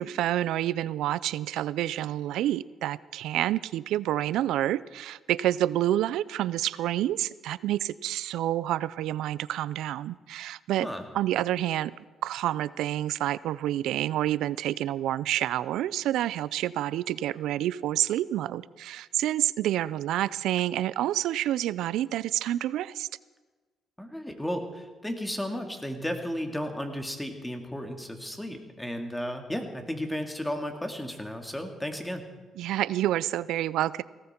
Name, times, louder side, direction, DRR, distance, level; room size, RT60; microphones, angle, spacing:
voice 1, 0.0-10.9 11.1-11.9 12.2-23.1 32.6-34.0, right 13 dB, 85° right, 19 dB, 0.4 m, -28 dB
voice 2, 24.0-32.3, equal, 5° left, 4 dB, 2.3 m, -34 dB
18.5 x 17.0 x 4.4 m, 1.3 s
cardioid pair, 90°, 0 cm